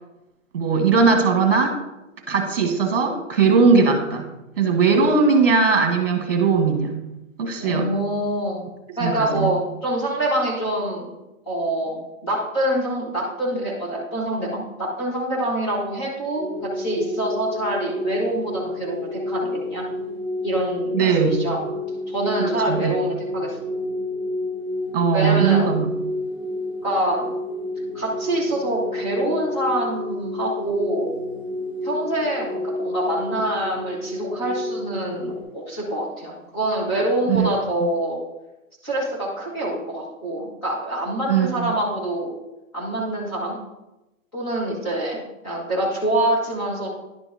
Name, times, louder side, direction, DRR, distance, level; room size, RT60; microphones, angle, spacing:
voice 1, 0.5-1.8 2.3-4.3 4.6-7.0 7.4-7.9 9.0-9.5 20.9-21.4 22.4-23.0 24.9-25.9 37.3-37.5 41.3-41.7, right 5 dB, 40° right, 4 dB, 1.5 m, -19 dB
voice 2, 7.6-8.6 9.0-11.1 11.4-19.9 20.4-21.6 22.1-23.6 25.1-25.7 26.8-27.3 27.9-31.2 31.8-38.2 38.8-42.3 42.7-43.6 44.3-46.9, right 1 dB, 20° left, -7 dB, 1.5 m, -25 dB
sound 1, 16.4-35.4, left 1 dB, 5° right, 1.6 m, -30 dB
11.0 x 5.5 x 2.7 m, 0.98 s
hypercardioid pair, 180°, 41 cm